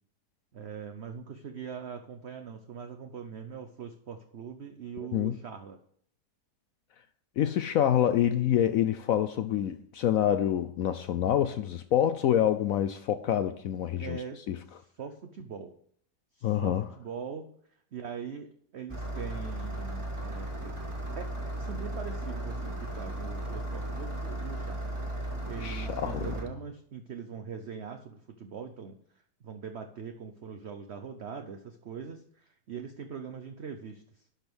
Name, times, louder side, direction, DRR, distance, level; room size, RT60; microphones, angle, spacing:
voice 1, 0.5-5.8 14.0-14.4 14.7-15.7 16.3-17.5 17.9-20.7 21.1-24.9 25.4-29.0 29.4-34.2, right 6 dB, 50° right, 0.9 m, -42 dB
voice 2, 7.4-14.2 14.5-14.6 16.4-16.9 25.6-26.3, left 10 dB, 70° left, 0.9 m, -27 dB
Engine starting, 18.9-26.4, right 1 dB, 20° right, 1.9 m, -35 dB
11.5 x 5.3 x 6.2 m
omnidirectional pair, 1.7 m